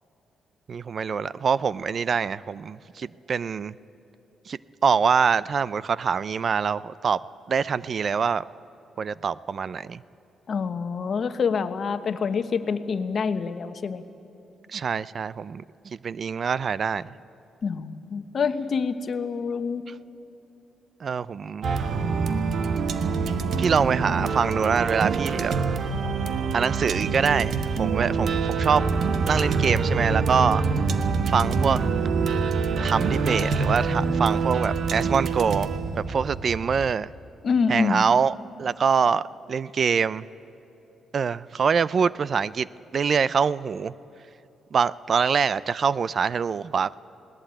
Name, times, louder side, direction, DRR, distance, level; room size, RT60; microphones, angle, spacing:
voice 1, 0.7-3.7 4.5-7.2 7.5-8.4 9.0-10.0 14.7-17.1 19.9-20.0 21.0-21.7 23.6-25.5 26.5-28.8 29.2-30.7 31.3-31.8 32.8-35.7 36.0-37.1 37.7-38.3 38.6-40.2 41.1-42.7 42.9-43.9 44.7-46.9, right 6 dB, 50° right, 19 dB, 0.4 m, -24 dB
voice 2, 10.5-14.0 17.6-19.8 37.4-38.1, left 5 dB, 50° left, 10 dB, 1.1 m, -26 dB
sound 1, 21.6-36.9, right 4 dB, 65° right, 1.2 m, -25 dB
20.0 x 18.0 x 9.0 m, 3.0 s
cardioid pair, 100°, 0 cm